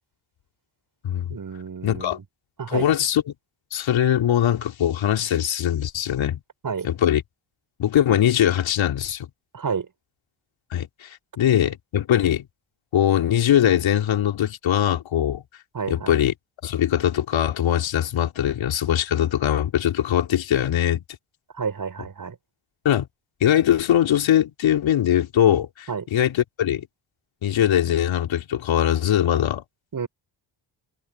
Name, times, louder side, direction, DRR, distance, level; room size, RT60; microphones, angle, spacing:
voice 1, 1.3-2.2 2.6-2.9 6.6-6.9 9.5-9.9 15.7-16.1 21.5-22.4 25.9-26.0 29.9-30.1, right 6 dB, 45° right, 6.1 m, -30 dB
voice 2, 1.8-2.2 2.7-3.2 3.7-6.4 6.8-7.2 7.8-9.3 10.7-12.5 12.9-15.4 15.9-16.3 16.6-21.0 22.8-23.1 23.4-26.9 27.4-29.6, left 10 dB, 70° left, 3.7 m, -21 dB
supercardioid pair, 70°, 47 cm